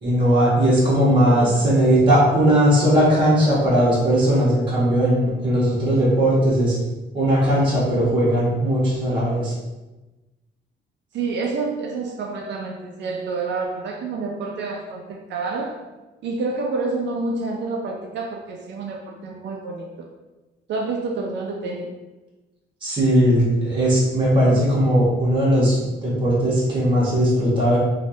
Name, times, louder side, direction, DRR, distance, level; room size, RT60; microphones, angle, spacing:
voice 1, 0.0-6.8 7.1-9.5 22.8-27.8, equal, 25° right, -7 dB, 1.1 m, -18 dB
voice 2, 1.3-1.7 11.1-15.8 16.2-20.1 20.7-21.9, right 3 dB, 65° right, 0 dB, 0.4 m, -28 dB
3.1 x 2.3 x 2.6 m, 1.1 s
cardioid pair, 90°, 20 cm